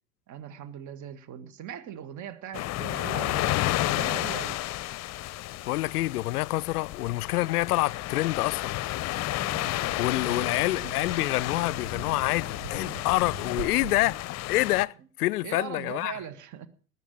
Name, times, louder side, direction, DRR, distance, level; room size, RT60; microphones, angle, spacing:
voice 1, 0.3-4.6 10.2-10.8 15.0-15.1 15.4-16.7, right 9 dB, 35° right, 1.7 m, -40 dB
sound 1, 2.5-14.8, left 16 dB, 35° left, 0.8 m, -32 dB
voice 2, 5.7-8.8 10.0-14.2 14.5-14.9 15.2-16.1, left 18 dB, 65° left, 0.6 m, -27 dB
Wind, 9.3-14.3, right 9 dB, 70° right, 1.1 m, -43 dB
19.0 x 7.4 x 7.7 m
figure-of-eight pair, 80°, 48 cm